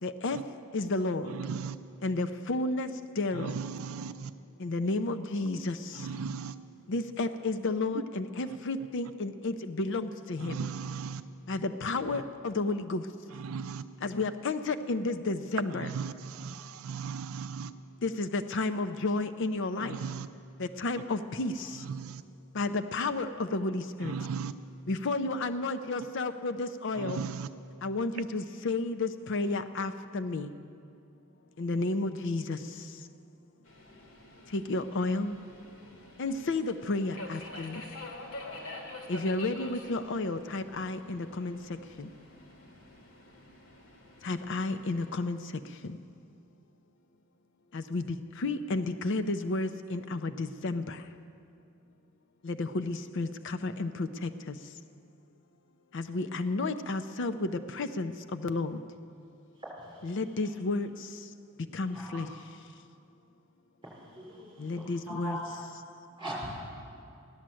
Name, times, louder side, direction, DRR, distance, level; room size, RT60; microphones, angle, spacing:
voice 1, 0.0-0.4 0.7-1.4 2.0-3.5 4.6-6.1 6.9-10.6 11.5-13.1 14.0-15.9 18.0-20.0 20.6-21.8 22.5-24.1 24.9-27.2 27.8-30.5 31.6-32.8 34.5-35.4 36.2-37.8 39.1-41.6 42.0-42.1 44.2-45.5 45.8-46.0 47.7-51.0 52.4-54.6 55.9-58.8 60.0-61.2 61.7-62.3 64.6-65.4, left 2 dB, 60° left, 0.6 m, -32 dB
voice 2, 1.3-1.8 3.3-4.3 6.0-6.5 10.4-11.2 13.4-13.8 15.8-17.7 19.8-20.3 21.8-22.2 24.0-24.5 27.0-27.5, right 6 dB, 80° right, 0.4 m, -36 dB
Subway metro underground, 33.7-45.2, left 2 dB, 80° left, 2.3 m, -47 dB
voice 3, 59.8-60.2 61.9-62.2 63.8-65.6 66.2-66.6, equal, 20° right, 5.2 m, -41 dB
15.5 x 11.5 x 7.6 m
head